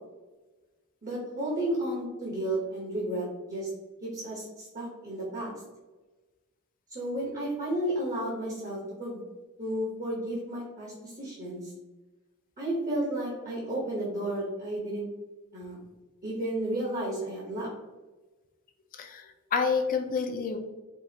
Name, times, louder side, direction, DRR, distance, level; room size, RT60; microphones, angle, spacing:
voice 1, 1.0-3.7 4.0-5.5 6.9-9.2 9.6-11.7 12.6-15.1 15.5-15.8 16.2-17.7, right 1 dB, 40° right, -4 dB, 0.9 m, -32 dB
voice 2, 19.0-20.6, left 5 dB, 40° left, 5 dB, 0.5 m, -29 dB
4.6 x 2.4 x 2.8 m, 1.2 s
head